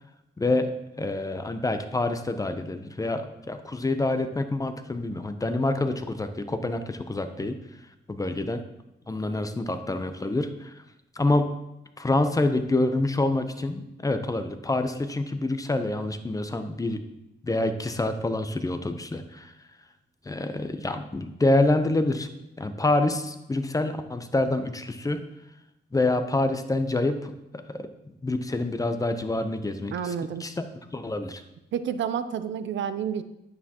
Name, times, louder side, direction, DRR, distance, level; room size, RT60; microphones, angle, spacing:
voice 1, 0.4-0.7 1.0-7.6 8.1-8.6 9.1-10.7 11.2-11.4 12.0-17.0 17.4-19.5 20.3-22.3 22.6-25.2 25.9-27.9 28.2-30.1 30.4-30.5 30.9-31.4, left 2 dB, 20° left, 8 dB, 0.6 m, -27 dB
voice 2, 29.9-30.5 31.7-33.2, right 8 dB, 80° right, 12 dB, 0.5 m, -29 dB
9.5 x 8.4 x 2.9 m, 0.89 s
cardioid pair, 115°, 19 cm